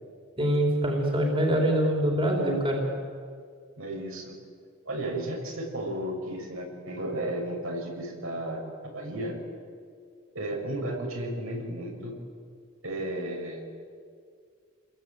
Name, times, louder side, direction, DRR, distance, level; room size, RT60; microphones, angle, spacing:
voice 1, 0.4-2.8, equal, 25° right, 0 dB, 4.0 m, -24 dB
voice 2, 3.8-4.3 4.9-9.4 10.3-12.1 12.8-13.6, right 1 dB, 75° right, 0 dB, 7.1 m, -33 dB
29.5 x 22.0 x 9.1 m, 2.1 s
head